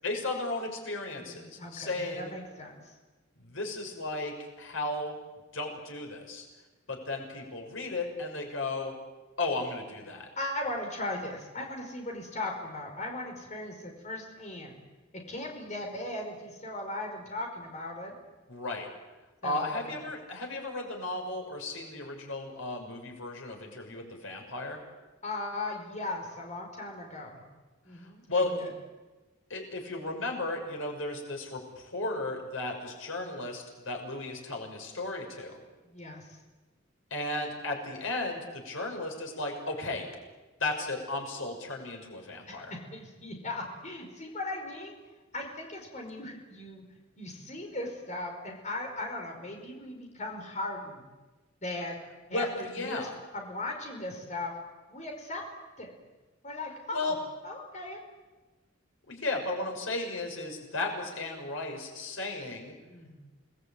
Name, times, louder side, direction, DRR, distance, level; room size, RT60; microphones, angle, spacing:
voice 1, 0.0-2.3 3.4-5.1 5.5-6.5 6.9-8.9 9.4-10.3 18.5-18.9 19.4-24.8 27.9-28.7 29.5-35.6 37.1-40.1 40.6-42.7 52.3-53.2 56.9-57.1 59.1-62.7, left 2 dB, 90° left, 2 dB, 6.2 m, -34 dB
voice 2, 1.2-3.0 10.4-14.8 15.1-18.1 19.4-19.9 25.2-27.4 27.8-28.7 35.8-36.4 42.5-44.9 45.3-46.8 47.2-51.1 51.6-52.0 52.3-53.1 53.3-54.5 54.9-55.4 55.8-55.9 56.4-57.2 57.4-58.0 62.9-63.2, left 2 dB, 40° left, 2 dB, 5.0 m, -38 dB
29.0 x 20.0 x 8.9 m, 1.2 s
head